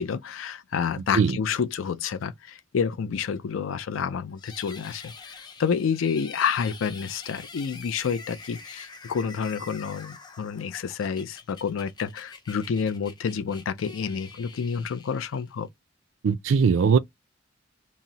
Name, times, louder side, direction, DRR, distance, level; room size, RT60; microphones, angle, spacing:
voice 1, 0.0-5.1 5.6-15.7, left 6 dB, 85° left, 0.4 m, -29 dB
sound 1, 4.4-15.7, left 4 dB, 20° left, 0.4 m, -46 dB
voice 2, 16.2-17.0, right 5 dB, 75° right, 0.4 m, -20 dB
2.7 x 2.0 x 3.8 m
head